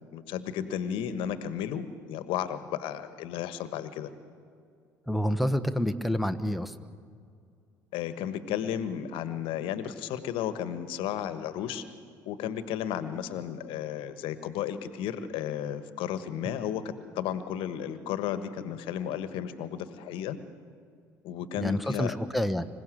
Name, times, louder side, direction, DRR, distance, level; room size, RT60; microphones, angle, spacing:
voice 1, 0.1-4.1 7.9-11.8 12.2-16.8 17.1-20.4 21.2-22.2, left 9 dB, 60° left, 12 dB, 1.3 m, -33 dB
voice 2, 5.1-6.7 21.6-22.7, equal, ahead, 9 dB, 1.2 m, -28 dB
26.0 x 16.5 x 7.7 m, 2.3 s
hypercardioid pair, 60°, 10 cm